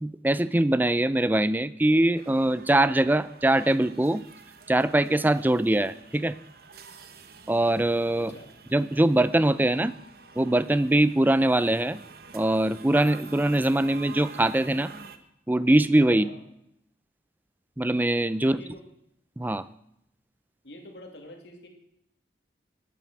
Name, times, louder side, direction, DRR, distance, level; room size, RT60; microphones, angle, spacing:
voice 1, 0.2-4.2 4.7-6.4 7.5-8.3 8.7-9.9 10.4-12.0 12.3-14.9 15.5-16.2 17.8-18.6 19.4-19.7, right 1 dB, 10° right, 16 dB, 0.4 m, -22 dB
sound 1, 2.2-15.2, right 4 dB, 55° right, 1.0 m, -48 dB
voice 2, 8.2-8.5 16.1-16.4 18.4-18.8 20.6-21.7, left 1 dB, 75° left, 2 dB, 2.5 m, -45 dB
13.0 x 9.3 x 6.1 m, 0.77 s
head